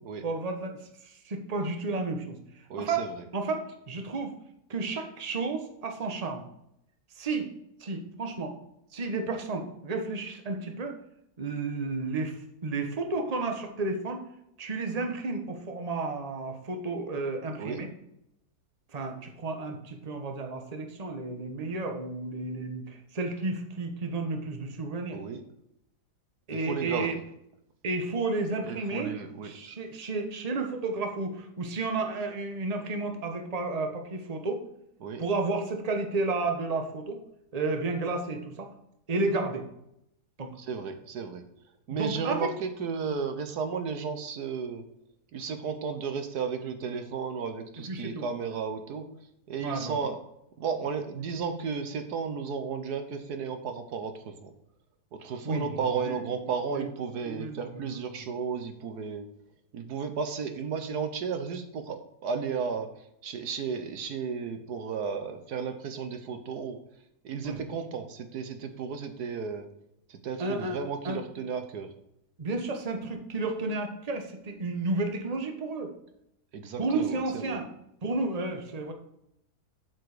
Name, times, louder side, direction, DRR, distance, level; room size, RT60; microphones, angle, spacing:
voice 1, 0.2-0.8 1.0-2.4 2.8-4.3 4.7-6.4 7.2-7.5 7.8-8.5 8.9-11.0 11.4-12.4 12.6-14.2 14.6-17.9 18.9-25.2 26.5-27.1 27.8-29.2 29.4-34.6 35.2-37.2 37.5-38.7 39.1-39.7 40.4-40.5 41.9-42.5 47.9-48.3 49.6-50.0 55.4-55.7 56.0-56.2 56.7-56.9 57.2-58.3 67.4-67.6 70.4-70.8 71.0-71.2 72.4-75.9 76.8-77.7 78.0-78.9, right 3 dB, 25° right, 4 dB, 1.1 m, -32 dB
voice 2, 2.7-3.1 17.6-17.8 25.1-25.4 26.6-27.2 28.6-29.5 35.0-35.2 40.6-41.4 41.9-44.8 45.3-49.1 49.5-50.2 50.6-54.5 55.2-59.3 59.7-62.9 63.2-66.8 67.2-69.7 70.1-71.9 76.5-77.6, right 6 dB, 80° right, 7 dB, 1.5 m, -33 dB
7.8 x 7.3 x 4.9 m, 0.78 s
omnidirectional pair, 1.7 m